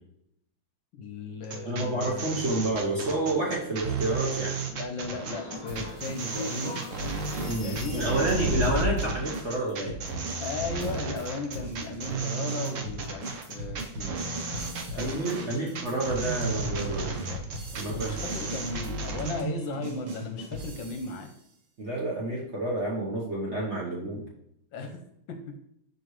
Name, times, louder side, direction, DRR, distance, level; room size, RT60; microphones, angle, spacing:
voice 1, 0.9-2.3 4.7-6.8 7.6-8.5 10.4-13.8 14.6-15.8 17.1-17.4 17.9-21.3 24.7-25.0 25.3-25.6, left 3 dB, 70° left, 5 dB, 1.3 m, -36 dB
sound 1, 1.4-19.4, right 4 dB, 80° right, 0.7 m, -34 dB
voice 2, 1.6-4.5 7.4-10.0 13.9-14.2 15.0-17.3 17.7-18.2 21.8-24.2, right 2 dB, 45° right, -4 dB, 0.9 m, -29 dB
sound 2, 5.1-9.2, left 1 dB, 15° left, 1.2 m, -33 dB
sound 3, 5.7-11.3 11.5-21.3, right 2 dB, 60° right, 2.0 m, -38 dB
6.1 x 5.2 x 3.1 m, 0.76 s
omnidirectional pair, 2.3 m